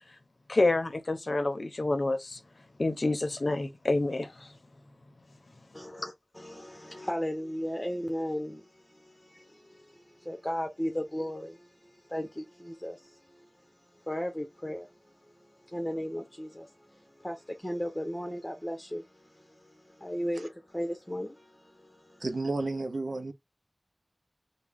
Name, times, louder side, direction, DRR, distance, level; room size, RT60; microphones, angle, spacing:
voice 1, 0.5-2.4 2.8-4.5, left 2 dB, 75° left, 0.7 m, -28 dB
voice 2, 5.7-13.5 14.1-14.9 15.4-22.2, equal, 20° left, 1.0 m, -36 dB
voice 3, 22.2-23.3, right 2 dB, 85° right, 0.5 m, -31 dB
3.5 x 2.2 x 3.4 m
wide cardioid pair, 45°, 0 cm